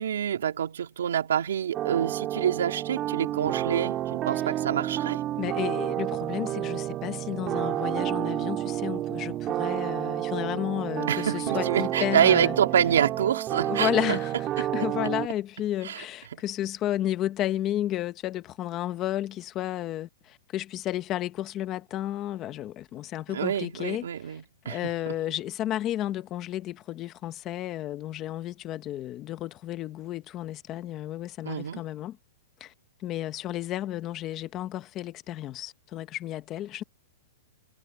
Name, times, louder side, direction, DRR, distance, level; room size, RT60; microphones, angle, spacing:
voice 1, 0.0-5.2 11.1-14.2 14.6-14.7 15.8-16.0 16.3-16.4 23.3-25.2 31.4-31.8, right 9 dB, 85° right, 3.4 m, -27 dB
sound 1, 1.7-15.3, right 13 dB, 20° right, 2.5 m, -30 dB
voice 2, 5.4-12.6 13.7-24.3 24.6-32.2 32.6-32.7 33.0-36.8, left 13 dB, 20° left, 1.1 m, -32 dB
hypercardioid pair, 170°, 0 cm